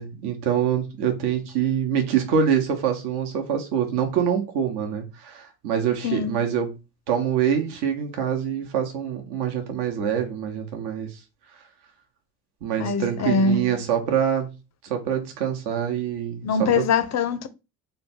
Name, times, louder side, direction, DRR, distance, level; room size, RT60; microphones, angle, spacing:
voice 1, 0.0-6.7 7.1-11.2 12.6-14.5 14.8-16.8, right 8 dB, 55° right, 1.0 m, -25 dB
voice 2, 6.0-6.3 12.8-13.7 16.4-17.5, left 4 dB, 35° left, 0.5 m, -23 dB
3.1 x 2.2 x 4.3 m
hypercardioid pair, 65°, 48 cm